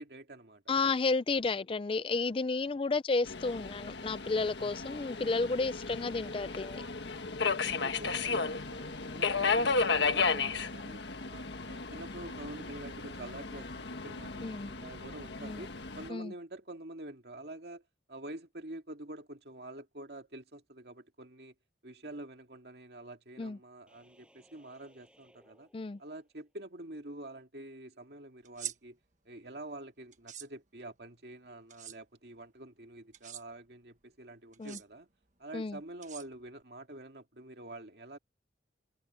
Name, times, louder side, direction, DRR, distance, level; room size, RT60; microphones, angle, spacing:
voice 1, 0.0-0.6 6.0-6.1 7.5-11.0 11.3-17.8 18.1-21.5 21.8-25.7 26.0-29.0 29.3-35.1 35.4-38.2, right 1 dB, 60° right, 2.3 m, -47 dB
voice 2, 0.7-6.8 14.4-14.7 15.4-15.6 16.1-16.3 23.4-23.6 25.7-26.0 34.6-34.8 35.5-35.8, left 3 dB, 30° left, 0.4 m, -32 dB
Subway metro underground, 3.3-16.1, left 4 dB, 70° left, 1.6 m, -34 dB
sound 1, 23.9-26.5, right 1 dB, 5° right, 7.4 m, -65 dB
sound 2, 28.4-28.8 30.1-30.5 31.7-32.0 33.1-33.4 34.5-34.8 36.0-36.6, right 11 dB, 40° right, 1.4 m, -43 dB
head